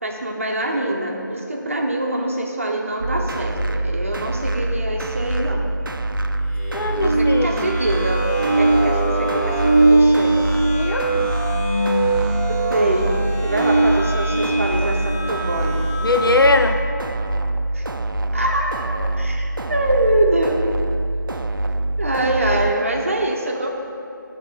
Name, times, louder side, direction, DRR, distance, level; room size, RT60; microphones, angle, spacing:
voice 1, 0.0-5.6 7.0-10.4 12.5-13.2 13.4-15.8 17.7-17.9 18.3-20.7 22.0-23.7, right 1 dB, 40° right, 1 dB, 0.7 m, -24 dB
sound 1, 3.0-22.7, right 1 dB, 70° right, 0.4 m, -25 dB
sound 2, 6.5-16.8, right 2 dB, 5° left, 1.3 m, -21 dB
voice 2, 6.7-7.7 10.8-11.4 16.0-16.8, left 2 dB, 90° left, 6 dB, 0.6 m, -20 dB
9.4 x 3.4 x 5.0 m, 2.4 s
figure-of-eight pair, 165°, 11 cm